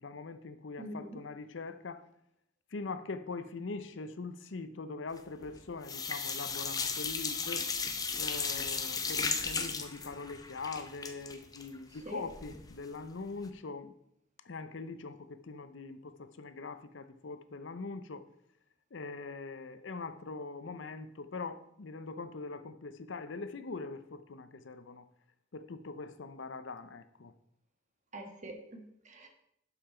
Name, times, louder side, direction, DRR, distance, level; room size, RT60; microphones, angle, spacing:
voice 1, 0.0-2.0 2.7-7.6 8.2-13.9 14.5-18.2 18.9-25.0 25.5-27.3, left 3 dB, 70° left, 0.7 m, -42 dB
voice 2, 0.8-1.2 12.0-12.2 28.1-29.3, right 1 dB, 40° right, 1.6 m, -44 dB
sound 1, 5.2-5.6 5.8-12.7 13.0-13.1 13.4-13.5, left 5 dB, 20° left, 0.7 m, -35 dB
11.5 x 5.7 x 4.4 m
head